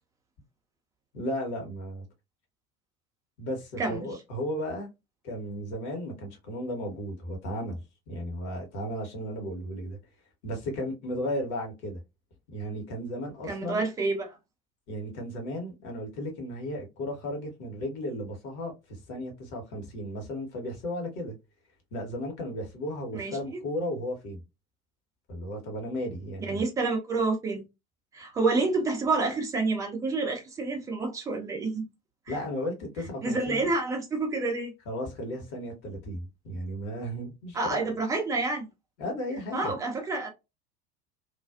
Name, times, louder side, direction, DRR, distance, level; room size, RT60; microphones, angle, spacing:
voice 1, 1.1-2.0 3.4-4.9 5.2-10.0 10.4-12.0 12.5-13.8 14.9-21.3 21.9-24.4 25.3-26.6 32.3-33.7 34.9-37.9 39.0-39.8, equal, 50° left, 1.2 m, -35 dB
voice 2, 3.8-4.1 13.5-14.4 23.1-23.4 26.4-27.6 28.1-31.8 32.3-32.4 33.2-34.7 37.5-38.7 39.5-40.3, right 3 dB, 10° right, 0.3 m, -28 dB
2.5 x 2.3 x 2.3 m
figure-of-eight pair, 75°, 44 cm